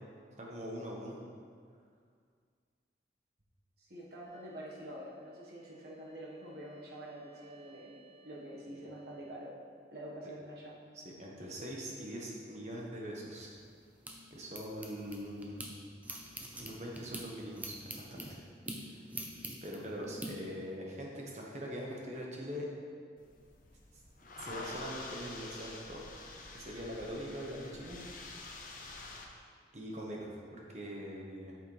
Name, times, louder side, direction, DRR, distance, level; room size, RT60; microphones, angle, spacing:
voice 1, 0.4-1.2 10.9-13.5 14.3-15.6 16.6-17.8 18.1-18.2 19.6-22.7 24.4-26.2 26.5-28.0 29.7-31.5, equal, 40° right, -2 dB, 1.2 m, -42 dB
voice 2, 3.8-9.5 9.9-10.8, right 1 dB, 60° right, -4 dB, 1.4 m, -47 dB
sound 1, 4.2-9.3, right 3 dB, 15° left, 1.9 m, -61 dB
sound 2, 13.4-15.7 16.0-20.3, right 1 dB, 10° right, 0.5 m, -45 dB
sound 3, 23.2-29.3, left 2 dB, 45° left, 0.8 m, -47 dB
8.2 x 6.6 x 3.3 m, 2.1 s
head